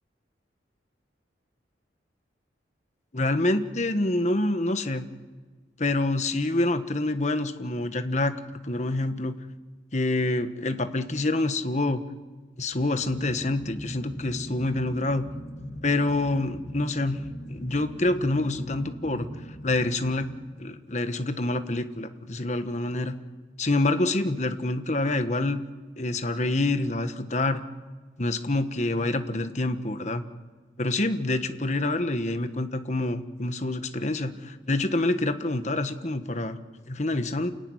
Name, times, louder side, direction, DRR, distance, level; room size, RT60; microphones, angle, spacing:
voice 1, 3.1-5.1 5.8-8.4 8.6-9.3 9.9-12.0 12.6-15.2 15.8-17.2 17.5-19.3 19.6-20.3 20.6-23.1 23.6-25.6 26.0-27.6 28.2-30.2 30.8-36.6 36.9-37.5, left 2 dB, 40° left, 9 dB, 1.3 m, -27 dB
sound 1, 12.6-20.9, equal, 60° left, 5.6 m, -40 dB
28.0 x 16.0 x 9.8 m, 1.4 s
head